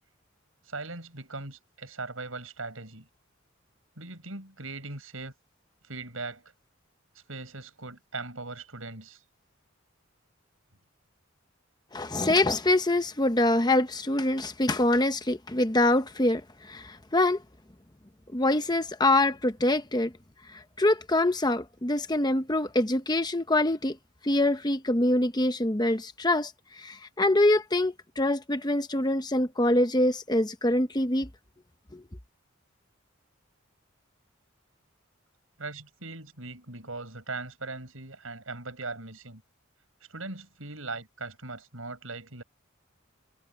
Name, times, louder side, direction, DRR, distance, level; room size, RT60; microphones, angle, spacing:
voice 1, 0.7-3.1 4.0-5.3 5.8-6.4 7.3-9.2 35.6-39.4 40.1-42.4, right 3 dB, 80° right, 6.8 m, -39 dB
voice 2, 11.9-17.4 18.3-20.1 20.5-24.0 24.2-26.5 26.8-31.3 31.9-32.0, left 1 dB, 20° left, 1.0 m, -25 dB
head